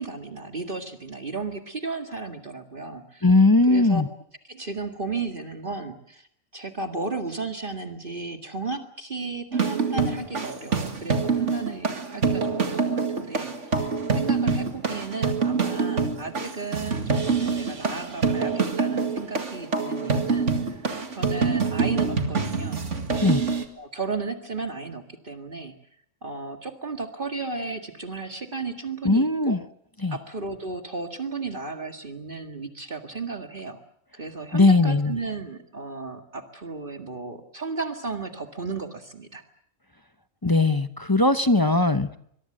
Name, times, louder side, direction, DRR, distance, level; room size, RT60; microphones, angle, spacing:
voice 1, 0.0-3.3 3.7-4.0 4.5-6.3 6.5-13.9 14.1-20.8 21.2-22.8 23.8-25.7 26.2-29.6 30.1-33.8 34.1-39.4, right 3 dB, 40° right, 5 dB, 2.0 m, -34 dB
voice 2, 3.2-4.1 23.2-23.4 29.0-29.6 30.0-30.2 34.5-35.1 40.4-42.2, left 2 dB, 20° left, 10 dB, 0.8 m, -19 dB
sound 1, 9.5-23.7, right 4 dB, 65° right, 2.4 m, -25 dB
24.5 x 22.0 x 7.8 m, 0.69 s
omnidirectional pair, 1.4 m